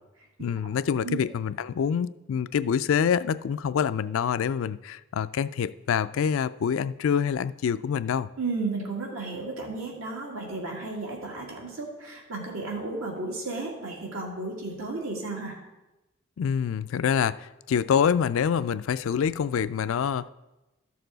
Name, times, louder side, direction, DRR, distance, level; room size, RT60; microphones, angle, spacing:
voice 1, 0.4-8.3 16.4-20.3, left 7 dB, 70° left, 0.3 m, -26 dB
voice 2, 8.4-15.6, right 3 dB, 85° right, 2.3 m, -33 dB
12.5 x 6.7 x 3.9 m
head